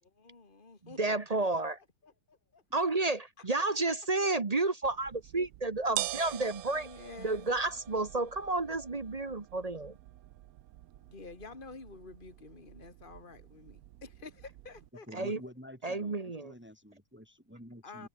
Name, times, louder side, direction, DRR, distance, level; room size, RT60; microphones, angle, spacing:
voice 1, 0.0-1.1 1.5-1.6 2.0-2.6 3.4-3.5 6.1-6.3 6.7-7.5 11.0-15.3 17.8-18.1, left 3 dB, 25° left, 3.1 m, -50 dB
voice 2, 0.8-1.8 2.7-6.9 7.2-10.0 15.1-15.4 15.8-16.5, right 2 dB, 30° right, 0.8 m, -31 dB
sound 1, 4.8-14.9, right 14 dB, 75° right, 0.8 m, -45 dB
voice 3, 15.1-16.2 16.4-18.1, equal, 5° right, 2.9 m, -49 dB
omnidirectional pair, 2.1 m